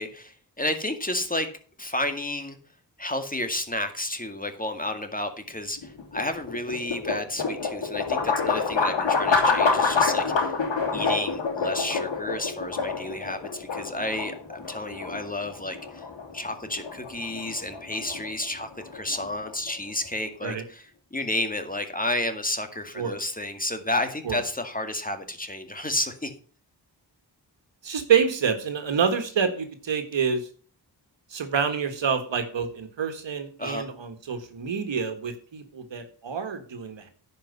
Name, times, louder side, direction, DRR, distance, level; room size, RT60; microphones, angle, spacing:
voice 1, 0.0-1.5 1.8-2.6 3.0-10.5 10.9-16.0 16.3-26.3 33.6-33.9, left 1 dB, 20° left, 6 dB, 2.0 m, -31 dB
sound 1, 5.8-19.9, left 4 dB, 80° left, 2.9 m, -27 dB
voice 2, 27.8-30.4 31.3-37.1, right 6 dB, 80° right, 7 dB, 1.7 m, -27 dB
10.0 x 5.5 x 6.8 m, 0.42 s
cardioid pair, 40°, 44 cm